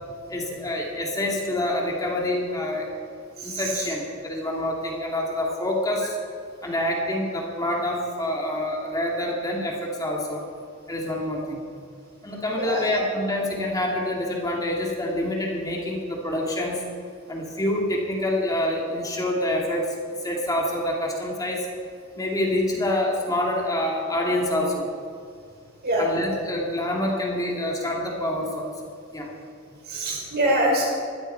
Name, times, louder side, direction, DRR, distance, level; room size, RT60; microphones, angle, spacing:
voice 1, 0.3-2.9 3.4-6.2 6.6-10.5 10.9-11.6 12.2-16.8 17.3-19.9 20.2-21.7 22.2-24.9 26.0-28.7 29.1-29.3, left 1 dB, 15° left, -2 dB, 2.3 m, -26 dB
voice 2, 29.9-30.9, right 1 dB, 50° right, -2 dB, 5.0 m, -23 dB
20.0 x 14.5 x 4.5 m, 2.3 s
head